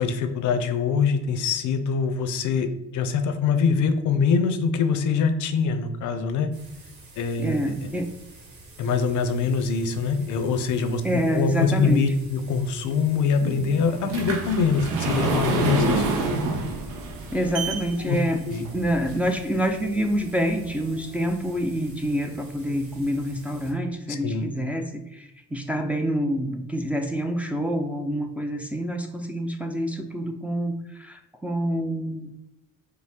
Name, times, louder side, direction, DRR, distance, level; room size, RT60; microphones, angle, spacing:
voice 1, 0.0-6.5 7.2-7.7 8.8-11.0 11.3-16.1 18.0-18.2 18.5-18.7 24.1-24.5, left 5 dB, 75° left, 9 dB, 0.6 m, -24 dB
sound 1, 6.5-23.7, right 2 dB, 70° right, 1.2 m, -48 dB
voice 2, 7.4-8.1 11.0-12.0 17.3-32.3, equal, 5° right, 2 dB, 0.4 m, -27 dB
sound 2, 13.4-19.5 20.1-20.2 20.8-20.9 21.2-21.3, right 3 dB, 85° right, 0.7 m, -28 dB
5.3 x 2.0 x 3.5 m, 0.88 s
cardioid pair, 90°, 30 cm